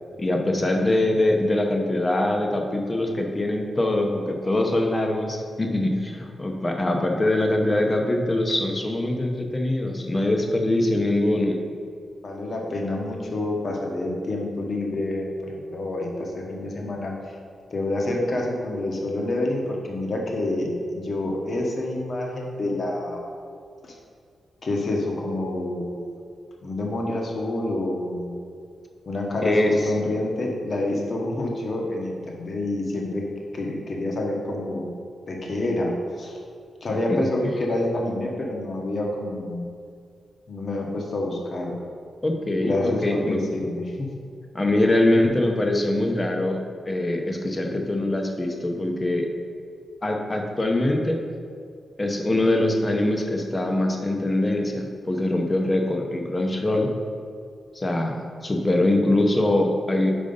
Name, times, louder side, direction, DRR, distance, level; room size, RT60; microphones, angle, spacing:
voice 1, 0.2-11.6 29.4-29.7 37.1-37.2 42.2-43.4 44.5-46.6 46.9-49.3 50.0-51.2 52.0-56.9 57.7-58.1 58.4-60.1, left 1 dB, 20° left, 2 dB, 0.7 m, -23 dB
voice 2, 12.2-17.4 17.7-23.3 23.8-24.0 24.6-26.2 26.6-28.3 29.1-33.2 33.5-34.8 35.3-36.4 36.8-39.6 40.5-41.8 42.6-44.1, left 1 dB, 45° left, 0 dB, 1.0 m, -28 dB
5.2 x 4.8 x 5.4 m, 2.3 s
wide cardioid pair, 140°, 0 cm